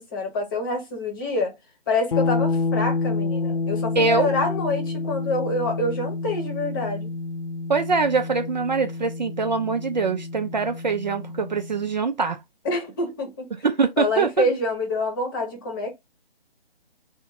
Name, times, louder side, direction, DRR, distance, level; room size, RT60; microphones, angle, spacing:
voice 1, 0.0-1.5 1.9-7.1 12.6-13.5 14.0-15.9, left 2 dB, 20° left, 0.9 m, -26 dB
sound 1, 2.1-11.9, left 3 dB, 55° left, 0.7 m, -28 dB
voice 2, 4.0-4.3 7.7-12.4 13.6-14.5, right 4 dB, 45° right, 0.5 m, -23 dB
3.6 x 2.1 x 4.2 m
figure-of-eight pair, 150°, 32 cm